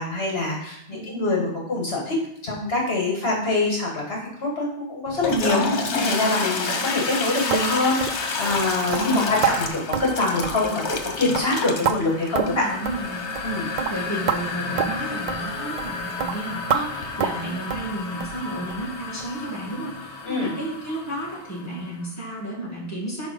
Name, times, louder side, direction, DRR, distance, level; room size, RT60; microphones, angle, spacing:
voice 1, 0.0-2.2 2.4-12.6 13.4-13.7 20.2-20.5, left 2 dB, 65° left, -2 dB, 1.7 m, -25 dB
voice 2, 0.9-1.3 9.0-9.4 12.3-13.2 13.9-23.3, right 1 dB, 15° left, -5 dB, 2.0 m, -32 dB
Toilet flush, 5.1-21.8, left 3 dB, 85° left, 1.3 m, -30 dB
sound 1, 7.5-7.7 8.0-8.2 8.5-8.6 8.9-9.1 9.4-9.6 9.9-10.1 10.4-10.7 10.9-11.1 11.4-12.0 12.4-12.6 12.9-13.0 13.4-13.5 13.8-13.9 14.3-14.4 14.8-14.9 15.3-15.4 15.8-15.9 16.2-16.3 16.7-16.8 17.2-17.4 17.7-17.9 18.2-18.4 18.7-18.8 19.2-19.3 19.7-19.8, right 7 dB, 55° right, 0.5 m, -26 dB
6.2 x 4.9 x 5.1 m, 0.76 s
omnidirectional pair, 1.1 m